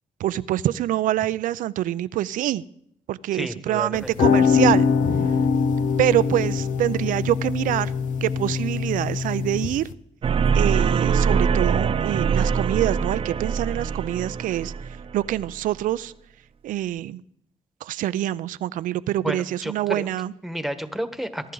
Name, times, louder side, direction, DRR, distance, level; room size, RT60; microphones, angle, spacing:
voice 1, 0.2-2.6 3.1-4.9 6.0-7.9 8.2-9.9 10.5-14.7 15.1-16.1 16.6-17.2 17.8-20.3, right 13 dB, 90° right, 17 dB, 0.5 m, -25 dB
voice 2, 3.3-4.1 19.2-20.1 20.4-21.5, equal, ahead, 9 dB, 1.4 m, -31 dB
sound 1, 3.9-9.9, left 6 dB, 75° left, 0.8 m, -23 dB
sound 2, 10.2-15.5, right 6 dB, 45° right, 0.6 m, -23 dB
22.0 x 11.0 x 3.9 m, 0.69 s
cardioid pair, 80°, 13 cm